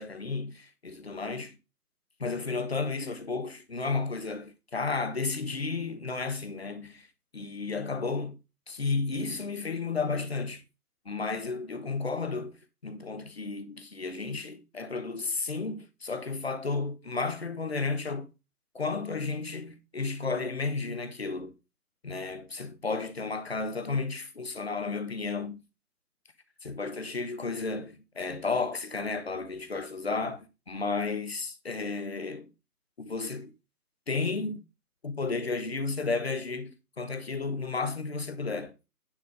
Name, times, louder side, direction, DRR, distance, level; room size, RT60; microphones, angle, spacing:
voice 1, 0.0-1.5 2.2-7.1 7.3-8.4 8.7-10.6 11.0-12.6 12.8-18.3 18.7-21.5 22.0-25.6 26.6-32.5 33.0-33.5 34.1-34.6 35.0-38.7, left 4 dB, 40° left, 1.4 m, -33 dB
10.0 x 4.9 x 5.2 m
figure-of-eight pair, 165°, 47 cm